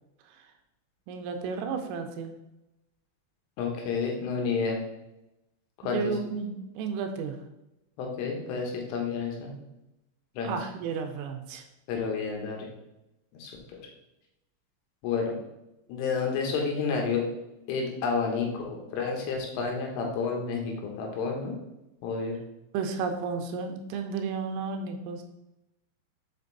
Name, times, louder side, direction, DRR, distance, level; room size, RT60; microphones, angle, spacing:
voice 1, 1.1-2.3 5.8-7.4 10.4-11.6 22.7-25.2, right 5 dB, 85° right, 5 dB, 3.3 m, -32 dB
voice 2, 3.6-4.8 5.8-6.1 8.0-9.6 10.4-10.6 11.9-12.7 13.4-13.8 15.0-15.3 15.9-17.2 17.7-21.6 22.0-22.4, left 5 dB, 75° left, 1 dB, 3.7 m, -30 dB
7.7 x 5.3 x 4.0 m, 0.92 s
omnidirectional pair, 5.9 m